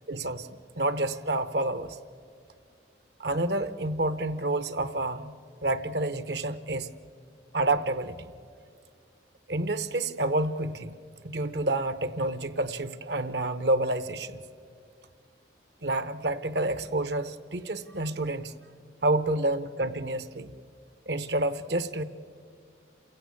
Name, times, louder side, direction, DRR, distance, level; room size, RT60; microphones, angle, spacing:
voice 1, 0.1-2.0 3.2-5.3 5.6-6.9 7.5-8.2 9.5-10.9 11.2-14.3 15.8-18.5 19.0-20.5 21.1-22.0, right 2 dB, 70° right, 13 dB, 0.9 m, -29 dB
28.0 x 16.0 x 8.4 m, 2.2 s
head